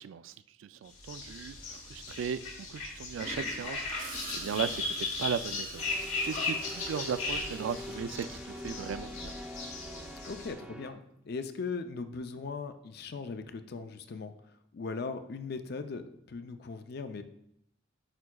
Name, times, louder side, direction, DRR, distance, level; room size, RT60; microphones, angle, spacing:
voice 1, 0.0-2.4 2.7-5.8 6.2-9.3, right 7 dB, 75° right, 14 dB, 0.3 m, -37 dB
sound 1, 1.0-10.5, left 3 dB, 90° left, 2.3 m, -37 dB
Gurgling / Toilet flush, 3.2-8.9 10.9-11.2, right 3 dB, 40° right, 0.9 m, -48 dB
sound 2, 5.8-10.9, left 1 dB, 5° right, 0.6 m, -44 dB
voice 2, 10.3-14.3 14.7-17.2, left 4 dB, 55° left, 9 dB, 0.4 m, -39 dB
8.9 x 4.7 x 2.3 m, 0.77 s
head